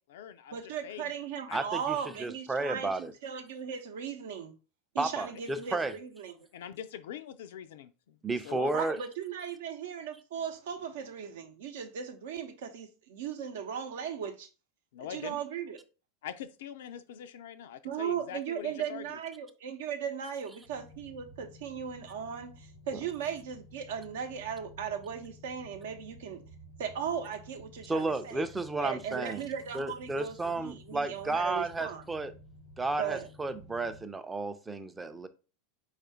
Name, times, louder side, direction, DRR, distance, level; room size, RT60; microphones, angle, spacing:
voice 1, 0.0-1.1 1.5-1.6 5.4-5.5 6.5-8.2 8.4-8.7 14.9-15.4 16.2-19.1, left 9 dB, 60° left, 0.4 m, -43 dB
voice 2, 0.5-4.5 4.9-6.5 8.7-14.5 15.1-15.8 17.8-26.4 26.8-28.4 28.8-32.0 33.0-33.3, right 8 dB, 60° right, 0.7 m, -37 dB
voice 3, 1.5-3.1 5.0-5.9 8.2-9.0 27.9-29.4 29.7-32.3 32.8-35.3, right 2 dB, 10° right, 0.5 m, -32 dB
sound 1, 20.6-34.0, equal, 85° right, 1.0 m, -53 dB
4.7 x 2.4 x 4.4 m
figure-of-eight pair, 80°, 0 cm